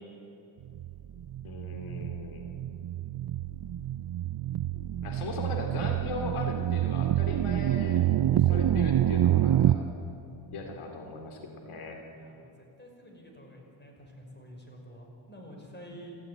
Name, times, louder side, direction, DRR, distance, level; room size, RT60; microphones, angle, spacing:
sound 1, 0.7-9.8, right 12 dB, 50° right, 0.7 m, -27 dB
voice 1, 1.4-2.5 5.0-8.0 8.3-9.9 10.5-12.0, left 3 dB, 90° left, 3 dB, 2.8 m, -39 dB
voice 2, 12.2-16.2, equal, 20° left, 1 dB, 5.4 m, -49 dB
28.5 x 13.5 x 9.5 m, 2.8 s
cardioid pair, 105°, 48 cm